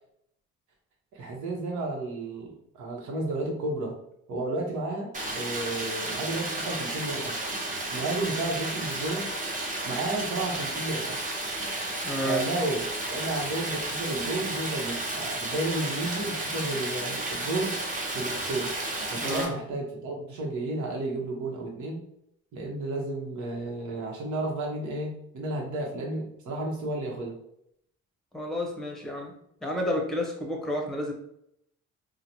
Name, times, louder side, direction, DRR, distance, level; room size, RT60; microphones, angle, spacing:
voice 1, 1.1-4.0 4.3-7.4 7.9-9.3 9.8-11.2 12.2-17.7 18.1-18.7 19.1-22.0 22.5-27.4, right 2 dB, 75° right, 0 dB, 1.0 m, -32 dB
Stream, 5.1-19.5, right 2 dB, 25° right, 0.8 m, -32 dB
voice 2, 12.0-12.4 19.2-19.5 28.3-29.3 29.6-31.1, left 1 dB, ahead, 1 dB, 0.8 m, -30 dB
3.8 x 2.2 x 2.9 m, 0.74 s
cardioid pair, 90°, 30 cm